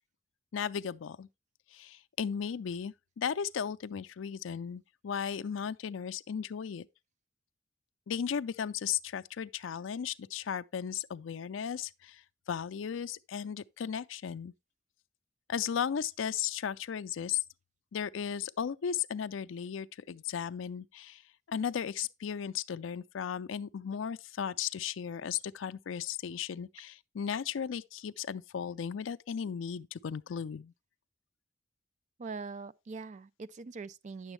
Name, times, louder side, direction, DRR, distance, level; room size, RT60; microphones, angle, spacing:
voice 1, 0.5-1.3 1.7-6.9 8.1-12.2 12.5-14.5 15.5-17.4 17.9-21.2 21.5-30.7, left 7 dB, 85° left, 0.4 m, -35 dB
voice 2, 32.2-34.3, right 4 dB, 40° right, 0.4 m, -42 dB
9.8 x 7.0 x 3.2 m
head